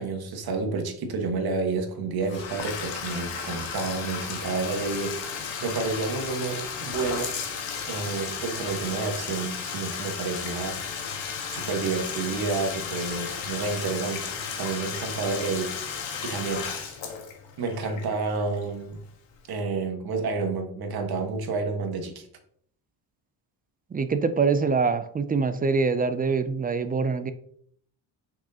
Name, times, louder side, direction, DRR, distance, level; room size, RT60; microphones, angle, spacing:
voice 1, 0.0-7.4 7.9-10.8 11.5-14.3 14.6-15.7 16.2-17.0 17.6-19.0 19.5-22.3, right 4 dB, 55° right, 4 dB, 1.4 m, -30 dB
Bathtub (filling or washing), 2.2-19.0, left 6 dB, 85° left, 1.5 m, -34 dB
voice 2, 23.9-27.3, right 4 dB, 20° right, 11 dB, 0.3 m, -24 dB
6.3 x 6.1 x 2.8 m, 0.62 s
cardioid pair, 135°, 43 cm